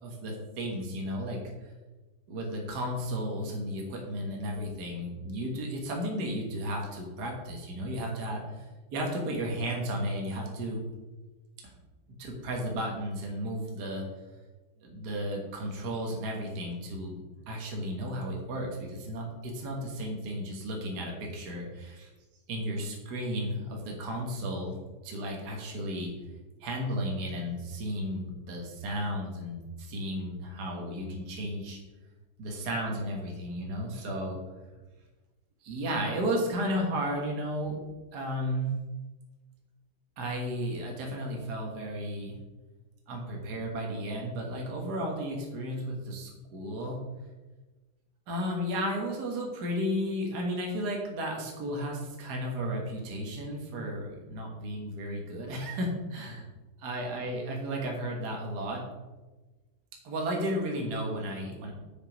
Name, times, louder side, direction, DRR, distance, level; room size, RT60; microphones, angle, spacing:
voice 1, 0.0-1.4 2.3-8.7 8.9-10.8 12.2-14.1 14.8-22.1 22.5-24.7 25.0-26.1 26.6-31.8 32.4-34.4 35.6-37.8 38.1-38.8 40.2-42.4 43.1-47.0 48.3-56.5 56.8-58.8 60.0-61.7, equal, 50° right, 0 dB, 1.9 m, -33 dB
6.9 x 6.4 x 5.2 m, 1.2 s
omnidirectional pair, 2.3 m